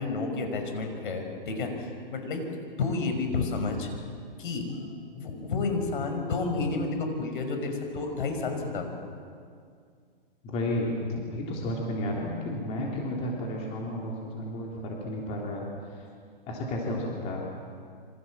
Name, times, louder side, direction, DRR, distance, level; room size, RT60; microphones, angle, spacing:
voice 1, 0.0-1.9 2.1-2.4 2.8-4.0 4.4-4.8 5.1-8.9, left 3 dB, 60° left, 5 dB, 5.8 m, -30 dB
voice 2, 10.4-16.1 16.5-17.4, left 1 dB, 20° left, -2 dB, 3.4 m, -32 dB
27.5 x 25.0 x 7.6 m, 2.2 s
hypercardioid pair, 155°, 29 cm